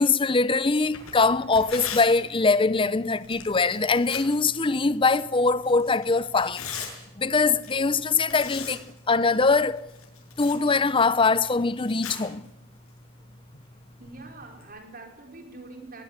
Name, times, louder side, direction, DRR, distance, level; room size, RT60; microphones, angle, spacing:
voice 1, 0.0-6.7 7.2-9.9 10.4-12.5, left 4 dB, 25° left, 0.7 m, -22 dB
Tearing, 0.8-14.7, left 6 dB, 85° left, 6.7 m, -42 dB
voice 2, 14.0-16.0, right 2 dB, 45° right, 4.7 m, -44 dB
21.0 x 19.5 x 8.2 m
head